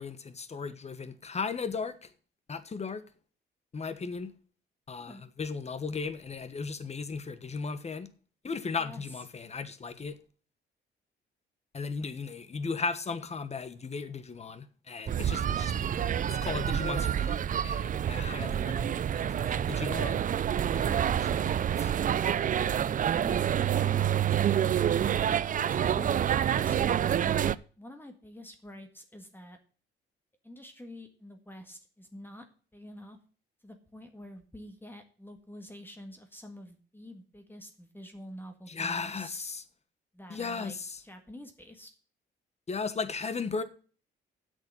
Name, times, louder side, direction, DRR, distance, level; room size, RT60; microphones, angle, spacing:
voice 1, 0.0-2.1 2.5-3.0 3.7-4.3 4.9-8.1 8.4-10.2 11.7-15.9 16.3-17.4 17.6-19.0 19.2-20.2 20.7-21.9 38.7-39.6 40.3-41.0 42.7-43.6, left 4 dB, 35° left, 1.3 m, -36 dB
sound 1, 15.1-27.6, right 9 dB, 40° right, 0.5 m, -28 dB
voice 2, 22.6-24.8 25.7-26.1 26.5-29.6 30.4-32.5 32.7-33.2 33.6-39.5 40.1-40.8 41.0-41.9, left 1 dB, 10° left, 1.7 m, -47 dB
8.1 x 6.6 x 8.3 m
cardioid pair, 90°, 20 cm